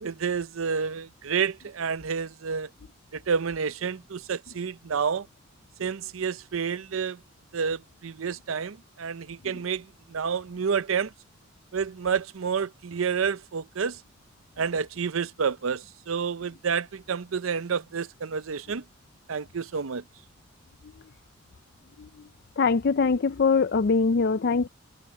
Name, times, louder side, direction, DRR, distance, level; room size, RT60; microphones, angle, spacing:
voice 1, 0.0-2.7 3.1-5.3 5.8-7.2 7.5-11.1 11.7-14.0 14.6-18.8 19.3-20.0, right 6 dB, 90° right, 0.6 m, -29 dB
voice 2, 22.6-24.7, left 4 dB, 50° left, 0.4 m, -22 dB
head